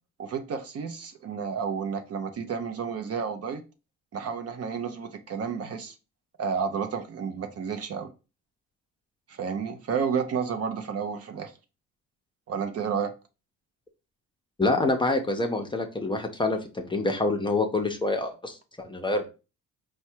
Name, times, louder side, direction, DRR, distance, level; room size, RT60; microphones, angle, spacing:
voice 1, 0.2-3.6 4.1-5.9 6.4-8.1 9.3-11.5 12.5-13.1, right 6 dB, 50° right, 0.7 m, -31 dB
voice 2, 14.6-19.3, left 2 dB, 15° left, 0.7 m, -26 dB
4.5 x 2.2 x 4.4 m
cardioid pair, 100°, 32 cm